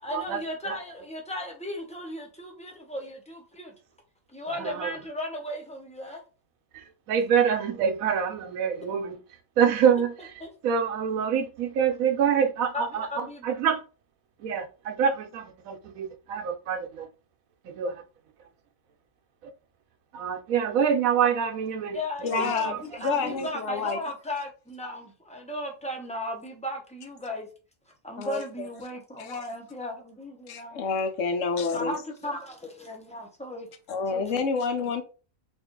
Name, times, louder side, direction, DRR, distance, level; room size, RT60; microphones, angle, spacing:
voice 1, 0.0-3.7 4.3-6.2 10.4-10.5 12.7-13.5 21.9-27.5 28.0-30.8 31.7-33.7 34.1-34.4, left 1 dB, 5° left, 0.7 m, -36 dB
voice 2, 4.6-4.9 6.7-9.2 9.6-10.1 10.6-13.1 13.4-13.8 14.4-17.1 17.6-17.9 20.1-22.0 22.3-22.8, right 7 dB, 80° right, 1.1 m, -26 dB
voice 3, 22.2-24.0 28.2-28.7 29.2-29.3 30.5-32.0 33.9-35.0, left 5 dB, 65° left, 1.0 m, -29 dB
3.6 x 2.5 x 3.7 m
omnidirectional pair, 1.4 m